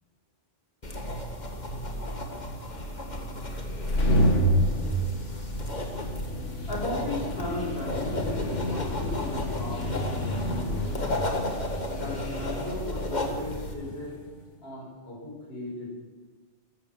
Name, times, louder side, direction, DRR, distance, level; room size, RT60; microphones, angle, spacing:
sound 1, 0.8-13.7, left 1 dB, 40° left, 1.8 m, -34 dB
sound 2, 3.6-14.1, equal, 80° left, 2.2 m, -29 dB
voice 1, 6.7-11.0 11.9-14.1 14.6-15.9, left 1 dB, 55° left, -3 dB, 5.6 m, -36 dB
13.5 x 13.5 x 7.0 m, 1.3 s
omnidirectional pair, 1.2 m